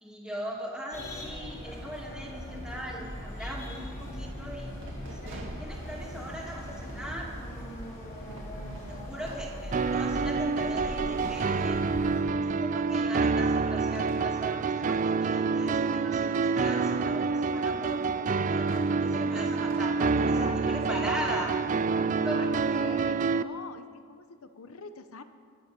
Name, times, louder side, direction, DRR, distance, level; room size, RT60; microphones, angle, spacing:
voice 1, 0.0-7.3 8.9-11.8 12.6-21.5 22.2-23.0, equal, 5° right, -3 dB, 2.6 m, -39 dB
sound 1, 0.9-12.2, equal, 40° left, 4.6 m, -40 dB
sound 2, 2.4-22.1, right 2 dB, 60° right, 1.9 m, -52 dB
sound 3, 9.7-23.4, right 4 dB, 35° right, 0.3 m, -27 dB
voice 2, 20.0-21.4 22.0-22.5 22.7-25.2, left 4 dB, 70° left, 10 dB, 0.9 m, -43 dB
24.0 x 8.0 x 6.9 m, 2.1 s
head